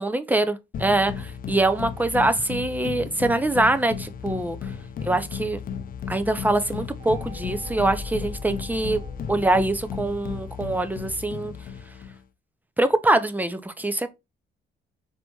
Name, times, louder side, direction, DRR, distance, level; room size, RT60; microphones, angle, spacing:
voice 1, 0.0-4.7 5.0-5.6 6.1-9.0 9.3-11.5 12.8-14.1, right 2 dB, 10° right, 0.5 m, -24 dB
sound 1, 0.7-12.2, left 7 dB, 45° left, 0.4 m, -35 dB
sound 2, 7.0-10.7, left 3 dB, 45° right, 1.1 m, -40 dB
4.2 x 2.8 x 2.3 m
cardioid pair, 90°, 20 cm